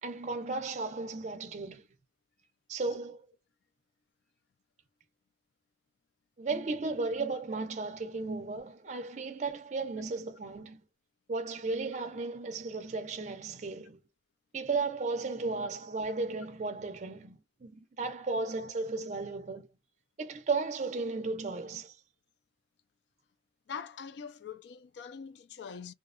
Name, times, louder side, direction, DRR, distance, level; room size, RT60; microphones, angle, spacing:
voice 1, 0.0-1.9 2.7-3.3 6.4-10.8 11.3-14.0 14.5-19.7 20.2-22.0, right 3 dB, 40° right, 0.4 m, -35 dB
voice 2, 23.7-25.9, left 6 dB, 70° left, 0.3 m, -43 dB
2.7 x 2.1 x 2.4 m
head